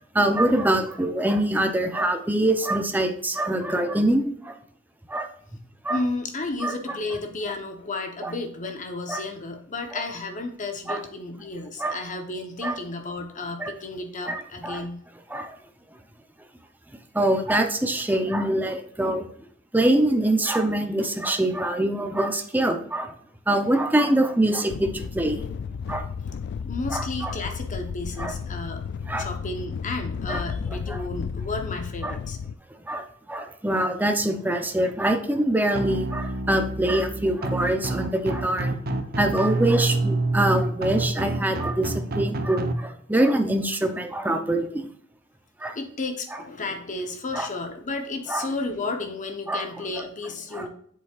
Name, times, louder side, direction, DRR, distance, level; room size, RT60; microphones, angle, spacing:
voice 1, 0.1-4.5 5.1-5.3 5.8-6.0 6.6-6.7 8.2-8.3 9.1-9.2 10.9-11.0 11.8-12.0 12.6-12.7 13.6-13.7 14.3-14.8 15.3-15.6 17.1-19.3 19.7-23.1 23.5-25.4 25.9-26.1 26.9-27.3 28.2-28.3 29.1-29.3 30.3-30.4 30.9-31.0 32.0-32.2 32.9-38.7 39.2-44.8 45.6-45.8 47.3-47.5 48.3-48.5 49.5-49.6 50.5-50.7, right 1 dB, 10° right, 5 dB, 0.7 m, -24 dB
voice 2, 5.9-15.0 26.6-28.8 29.2-32.4 45.7-50.7, left 3 dB, 35° left, 4 dB, 1.0 m, -32 dB
sound 1, 24.7-32.6, left 6 dB, 55° left, 0.3 m, -33 dB
sound 2, 35.7-42.7, right 2 dB, 45° right, 0.8 m, -27 dB
8.0 x 7.3 x 2.5 m, 0.63 s
head